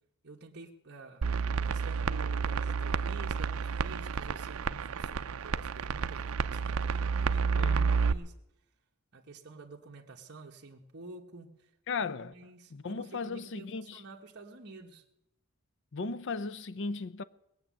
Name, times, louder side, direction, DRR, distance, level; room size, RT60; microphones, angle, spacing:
voice 1, 0.2-8.3 9.1-11.7 12.0-15.0, right 3 dB, 50° right, 1.3 m, -50 dB
sound 1, 1.2-8.1, right 5 dB, 75° right, 0.5 m, -30 dB
voice 2, 7.6-8.0 11.9-12.3 12.7-14.0 15.9-17.2, left 4 dB, 55° left, 0.6 m, -36 dB
20.0 x 8.2 x 7.6 m
head